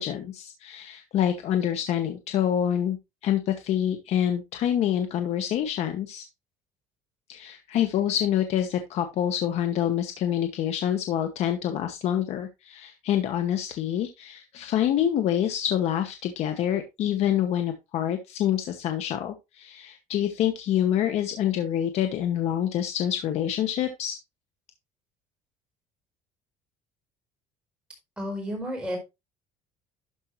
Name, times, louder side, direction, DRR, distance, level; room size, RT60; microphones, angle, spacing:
voice 1, 0.0-3.0 3.2-6.3 7.3-24.2, left 10 dB, 50° left, 7 dB, 1.0 m, -26 dB
voice 2, 28.2-29.0, equal, 5° right, 0 dB, 4.5 m, -31 dB
12.0 x 5.3 x 3.1 m, 0.24 s
cardioid pair, 160°, 14 cm